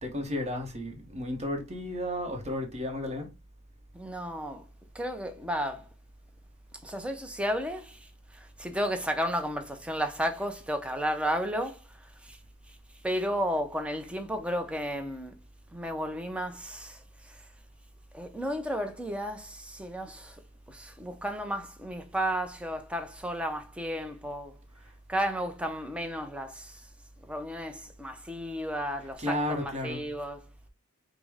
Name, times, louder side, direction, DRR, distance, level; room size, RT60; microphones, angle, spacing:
voice 1, 0.0-3.3 29.2-30.1, left 1 dB, 30° right, 1.0 m, -33 dB
voice 2, 3.9-4.6 4.9-5.8 6.8-12.4 13.0-15.3 15.7-17.4 18.1-20.4 20.7-24.5 25.1-26.9 27.2-30.5, equal, 5° right, 0.5 m, -33 dB
5.1 x 2.1 x 3.4 m
head